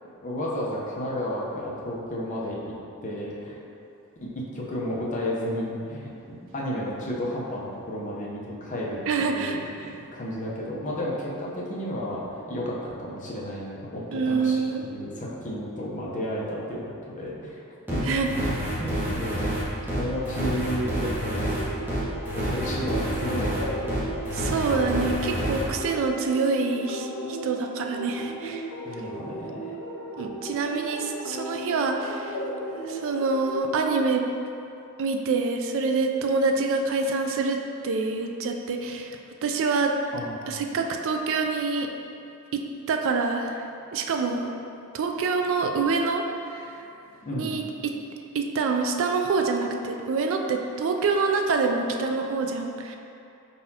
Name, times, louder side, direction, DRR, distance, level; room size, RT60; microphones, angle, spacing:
voice 1, 0.2-2.7 3.0-3.6 4.2-16.8 17.1-17.6 17.9-18.4 18.8-19.6 20.0-21.5 22.3-23.9 28.8-29.7 40.1-40.6 47.2-47.6, equal, 35° left, -5 dB, 0.7 m, -32 dB
voice 2, 9.1-9.6 14.1-14.8 18.1-18.3 24.3-28.7 30.2-32.4 32.9-34.2 35.0-37.6 37.8-39.9 40.5-41.9 42.5-42.6 42.9-43.6 43.9-44.5 44.9-46.2 46.5-46.8 47.3-47.9 48.3-53.0, right 4 dB, 60° right, 3 dB, 0.3 m, -26 dB
sound 1, 17.9-25.6, right 1 dB, 10° right, 0.8 m, -28 dB
sound 2, 21.4-34.1, right 1 dB, 80° left, 0.5 m, -36 dB
4.7 x 4.0 x 2.8 m, 2.7 s
head